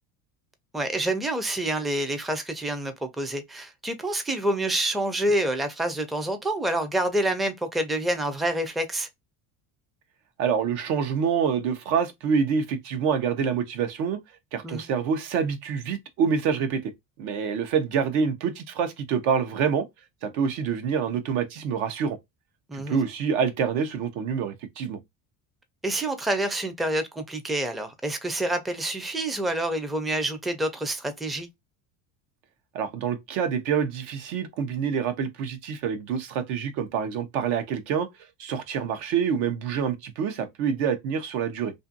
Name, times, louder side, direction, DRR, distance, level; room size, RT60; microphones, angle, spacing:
voice 1, 0.7-9.1 14.6-14.8 22.7-23.0 25.8-31.5, right 1 dB, ahead, 0.3 m, -27 dB
voice 2, 10.4-14.2 14.5-16.9 17.2-19.9 20.2-22.2 22.7-25.0 32.7-38.1 38.4-41.7, right 7 dB, 80° right, 0.8 m, -26 dB
2.6 x 2.5 x 2.5 m
supercardioid pair, 100°, 42 cm